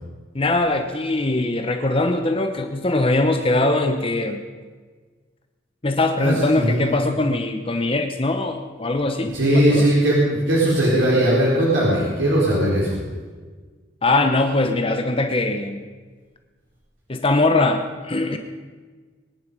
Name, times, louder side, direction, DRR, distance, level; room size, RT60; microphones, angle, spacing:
voice 1, 0.3-4.4 5.8-9.9 14.0-15.8 17.1-18.4, left 2 dB, 30° left, 6 dB, 0.9 m, -21 dB
voice 2, 6.2-6.9 9.3-13.0, right 1 dB, 90° right, -6 dB, 4.1 m, -19 dB
22.5 x 10.5 x 5.3 m, 1.4 s
head